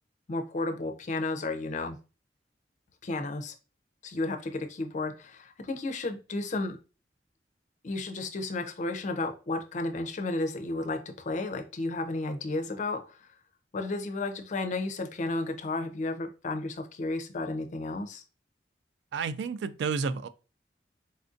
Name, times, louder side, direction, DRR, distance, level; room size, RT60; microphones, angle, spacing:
voice 1, 0.3-2.0 3.0-3.5 4.0-6.8 7.8-13.3 13.7-18.2, left 2 dB, 45° left, 0.4 m, -33 dB
voice 2, 19.1-20.3, right 5 dB, 80° right, 0.3 m, -31 dB
4.3 x 2.5 x 2.4 m
head